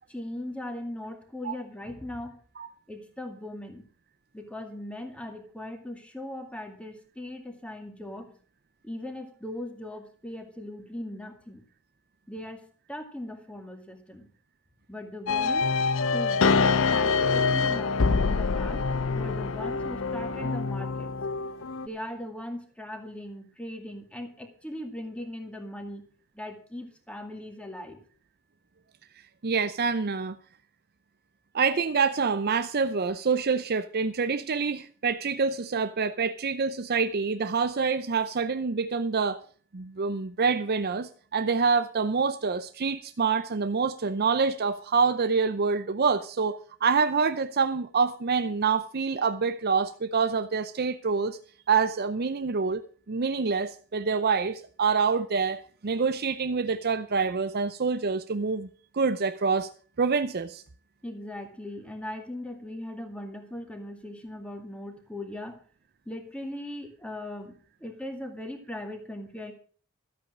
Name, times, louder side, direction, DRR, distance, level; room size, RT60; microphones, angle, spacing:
voice 1, 0.1-2.4 2.9-3.8 4.3-8.4 8.8-11.6 12.3-14.3 14.9-15.7 16.1-18.8 19.1-21.1 21.8-26.0 26.3-28.0 61.0-65.6 66.1-69.5, left 1 dB, 5° left, 2.2 m, -39 dB
sound 1, 15.3-21.9, left 4 dB, 60° left, 0.6 m, -25 dB
voice 2, 29.4-30.4 31.5-39.4 39.7-51.4 51.7-58.7 58.9-59.7 60.0-60.6, right 5 dB, 45° right, 0.6 m, -26 dB
13.0 x 8.5 x 6.2 m
head